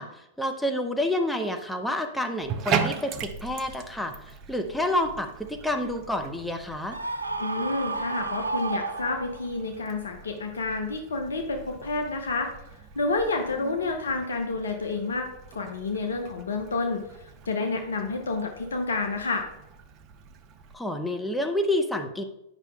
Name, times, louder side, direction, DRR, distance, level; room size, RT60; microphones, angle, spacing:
voice 1, 0.0-7.0 13.6-13.8 20.7-22.2, left 1 dB, ahead, 4 dB, 0.7 m, -29 dB
Bathtub (filling or washing), 2.4-20.7, right 7 dB, 35° right, 0.6 m, -39 dB
Screaming, 6.9-9.6, right 3 dB, 85° right, 0.5 m, -32 dB
voice 2, 7.4-12.5 13.0-15.3 15.5-17.0 17.5-19.5, left 3 dB, 70° left, 4 dB, 0.7 m, -29 dB
9.0 x 5.8 x 2.3 m, 0.83 s
figure-of-eight pair, 95°, 0 cm